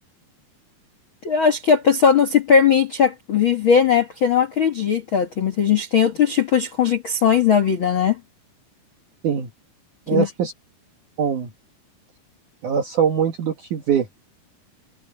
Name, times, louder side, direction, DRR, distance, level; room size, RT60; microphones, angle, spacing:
voice 1, 1.2-8.2 10.1-10.3, left 7 dB, 55° left, 1.4 m, -18 dB
voice 2, 10.1-10.5 11.2-11.5 12.6-14.1, right 8 dB, 55° right, 2.6 m, -22 dB
omnidirectional pair, 5.0 m